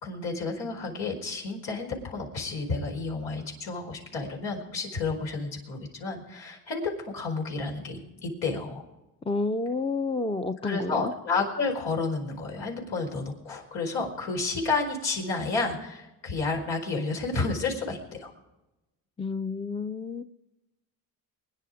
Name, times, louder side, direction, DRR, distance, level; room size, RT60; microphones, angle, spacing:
voice 1, 0.0-8.8 10.6-18.3, left 3 dB, 80° left, 0 dB, 4.8 m, -31 dB
voice 2, 9.2-11.1 19.2-20.2, left 3 dB, 15° left, 10 dB, 0.7 m, -30 dB
23.0 x 10.5 x 5.0 m, 0.99 s
cardioid pair, 80°, 44 cm